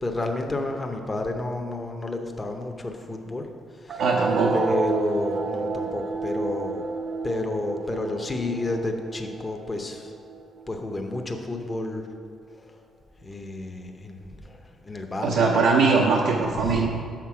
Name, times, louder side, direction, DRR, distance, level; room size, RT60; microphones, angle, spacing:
voice 1, 0.0-3.5 3.8-4.0 4.5-6.8 7.2-10.1 10.7-12.1 13.2-14.6 14.8-15.6 16.5-16.9, left 2 dB, 20° left, 3 dB, 0.7 m, -30 dB
sound 1, 3.9-10.9, right 3 dB, 45° right, 0.4 m, -30 dB
voice 2, 4.0-4.6 15.2-16.9, right 4 dB, 85° right, -2 dB, 0.6 m, -21 dB
6.7 x 5.9 x 4.8 m, 2.3 s
cardioid pair, 120°, 0 cm